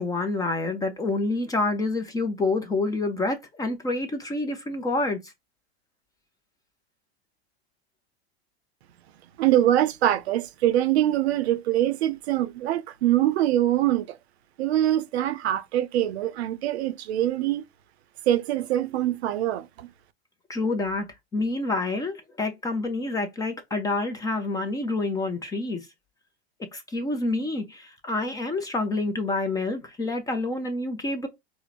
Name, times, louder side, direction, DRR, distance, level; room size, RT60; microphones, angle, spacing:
voice 1, 0.0-5.2 20.5-21.1 21.3-25.9 26.7-31.3, left 2 dB, 10° left, 0.5 m, -28 dB
voice 2, 9.4-14.2 14.6-17.6 18.3-19.9, right 13 dB, 70° right, 0.6 m, -24 dB
4.5 x 2.1 x 2.4 m
hypercardioid pair, 125°, 33 cm